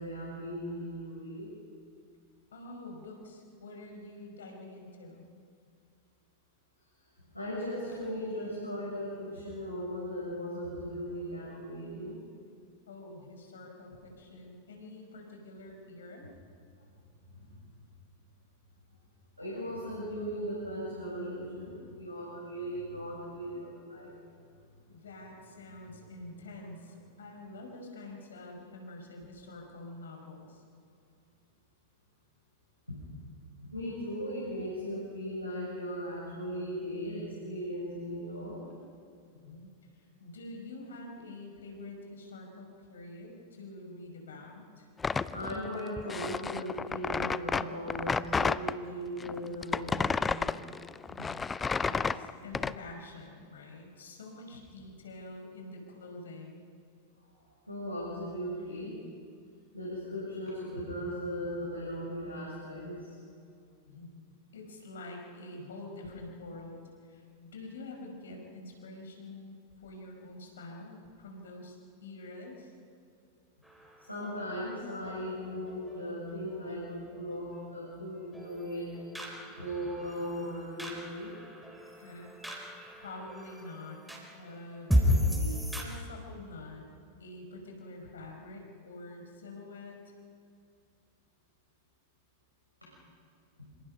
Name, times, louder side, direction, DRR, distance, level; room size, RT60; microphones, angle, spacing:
voice 1, 0.0-1.5 7.3-12.2 17.3-17.6 19.4-24.1 32.9-33.0 33.7-38.6 45.3-50.6 57.7-59.0 59.7-63.1 74.0-78.9 79.4-81.3, equal, 90° left, -7 dB, 7.3 m, -38 dB
voice 2, 2.5-5.2 12.9-16.3 24.9-30.6 39.3-44.9 51.1-51.5 51.8-56.6 63.9-64.3 64.5-72.7 82.0-82.4 82.6-84.0 84.3-86.8 87.2-90.1, left 2 dB, 65° left, 2 dB, 5.3 m, -46 dB
sound 1, 45.0-48.7 49.2-52.7, left 5 dB, 15° left, 0.5 m, -31 dB
sound 2, 73.6-85.8, left 1 dB, 5° right, 4.2 m, -35 dB
26.5 x 26.0 x 5.3 m, 2.3 s
figure-of-eight pair, 90°, 0 cm